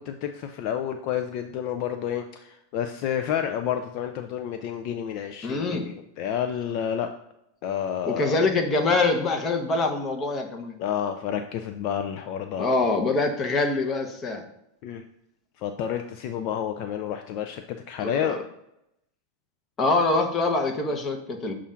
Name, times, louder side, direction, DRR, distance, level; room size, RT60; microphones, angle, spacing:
voice 1, 0.0-7.1 7.6-8.5 10.8-12.7 14.8-15.0 15.6-18.4, left 9 dB, 50° left, 7 dB, 0.4 m, -30 dB
voice 2, 5.4-5.9 8.0-10.8 12.6-14.4 18.0-18.4 19.8-21.5, left 3 dB, 25° left, 4 dB, 0.9 m, -24 dB
7.0 x 2.5 x 5.6 m, 0.82 s
supercardioid pair, 140°, 0 cm